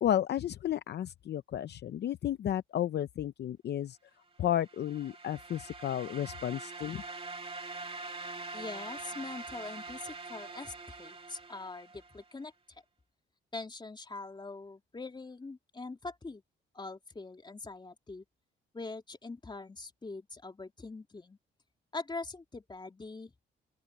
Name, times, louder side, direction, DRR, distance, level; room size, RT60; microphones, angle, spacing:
voice 1, 0.0-4.0 4.4-7.0, left 11 dB, 55° left, 0.7 m, -32 dB
sound 1, 4.5-12.2, right 3 dB, 30° right, 2.5 m, -44 dB
voice 2, 8.5-12.8 13.5-16.4 16.7-18.2 18.7-21.4 21.9-23.3, left 3 dB, 25° left, 3.2 m, -43 dB
open air
cardioid pair, 90°, 20 cm